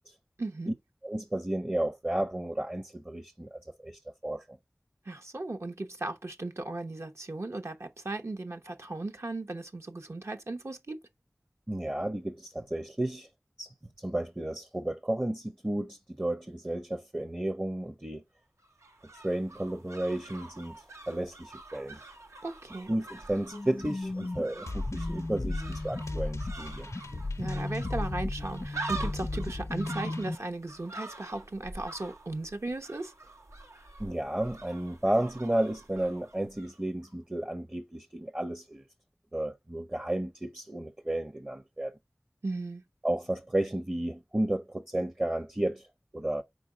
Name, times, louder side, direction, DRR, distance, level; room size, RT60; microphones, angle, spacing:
voice 1, 0.4-0.7 5.1-11.0 22.4-22.9 27.4-33.1 42.4-42.8, right 2 dB, 70° right, 1.0 m, -36 dB
voice 2, 1.0-4.6 11.7-13.3 13.6-18.2 19.2-22.0 22.9-26.9 34.0-38.8 39.3-41.9 43.0-45.9 46.1-46.4, right 1 dB, 25° right, 0.6 m, -32 dB
sound 1, 18.6-36.8 37.0-37.1, right 2 dB, 90° right, 1.1 m, -45 dB
sound 2, 23.5-30.4, left 2 dB, 30° left, 0.3 m, -37 dB
sound 3, 24.7-30.3, left 2 dB, 85° left, 0.6 m, -37 dB
5.0 x 4.0 x 5.0 m
wide cardioid pair, 45°, 5 cm